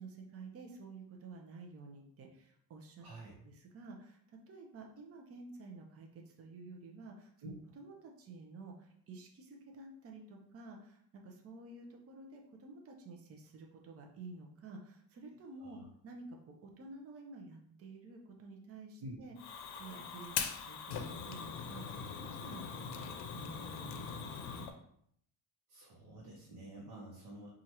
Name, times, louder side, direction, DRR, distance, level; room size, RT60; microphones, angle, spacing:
voice 1, 0.0-3.0 3.4-15.8 16.0-19.3 19.8-24.7, right 3 dB, 40° right, 2 dB, 0.6 m, -51 dB
voice 2, 3.0-3.3 15.6-15.9 19.0-19.2 25.7-27.5, right 1 dB, 65° right, -3 dB, 0.9 m, -49 dB
Fire, 19.4-24.7, left 6 dB, 85° left, 0.6 m, -41 dB
4.4 x 2.4 x 2.8 m, 0.68 s
cardioid pair, 135°, 38 cm